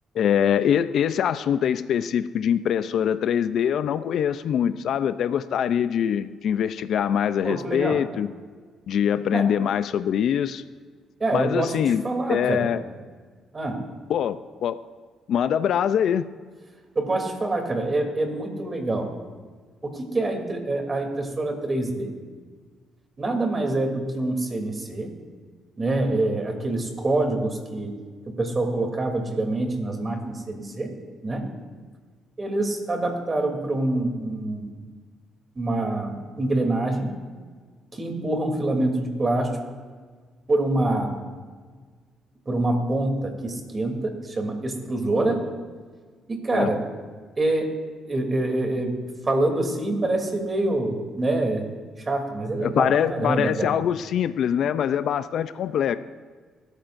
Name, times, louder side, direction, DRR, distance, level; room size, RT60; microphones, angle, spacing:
voice 1, 0.1-8.3 8.9-10.6 11.3-12.0 12.3-12.8 14.1-14.8 15.3-16.2 46.5-46.7 52.6-56.0, left 9 dB, 70° left, 11 dB, 0.5 m, -23 dB
voice 2, 7.4-8.0 9.3-9.5 11.2-12.7 13.5-13.8 16.9-19.1 19.8-22.1 23.2-25.1 25.8-27.9 28.3-30.9 31.2-31.5 32.4-34.7 35.5-37.2 37.9-39.6 40.5-41.2 42.5-45.5 46.3-46.8 47.4-47.7 48.1-49.0 49.2-51.6 52.0-53.7, right 2 dB, 30° right, 3 dB, 3.0 m, -26 dB
26.0 x 13.5 x 2.6 m, 1.5 s
cardioid pair, 90°, 0 cm